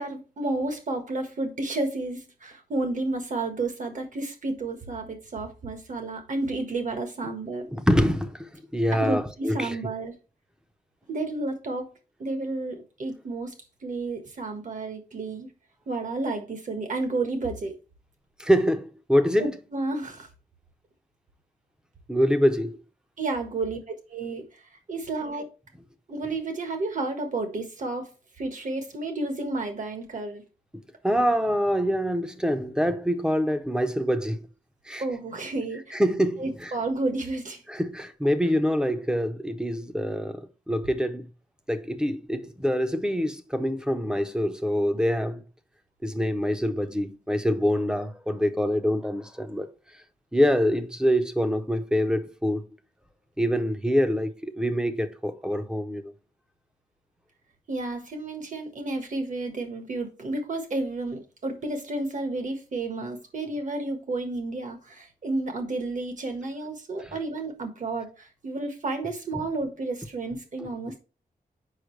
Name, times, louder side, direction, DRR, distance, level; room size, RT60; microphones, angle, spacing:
voice 1, 0.0-7.7 8.9-10.1 11.1-11.9 12.2-13.6 13.8-15.5 15.9-17.8 19.4-20.3 23.2-24.6 24.9-25.5 26.1-28.1 28.4-30.4 35.0-36.0 36.4-37.6 57.7-71.0, right 2 dB, 55° right, 1.4 m, -31 dB
voice 2, 7.7-9.7 18.4-19.4 22.1-22.8 30.7-34.4 34.9-35.0 35.9-36.7 37.7-41.3 41.7-45.4 46.0-49.7 50.3-52.6 53.4-56.1 67.0-67.1, equal, 5° right, 0.6 m, -25 dB
6.4 x 5.5 x 3.2 m
wide cardioid pair, 175°, 16 cm